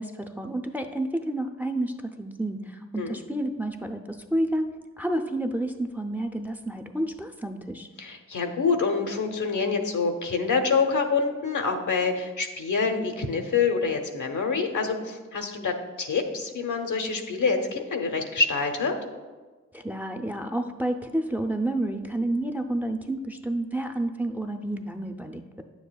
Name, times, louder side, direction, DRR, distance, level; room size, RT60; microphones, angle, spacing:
voice 1, 0.0-4.7 5.0-7.9 19.7-25.6, right 1 dB, 5° right, 4 dB, 0.6 m, -30 dB
voice 2, 8.0-19.0, left 4 dB, 75° left, 4 dB, 0.8 m, -26 dB
9.2 x 7.1 x 2.3 m, 1.3 s
cardioid pair, 40°, 30 cm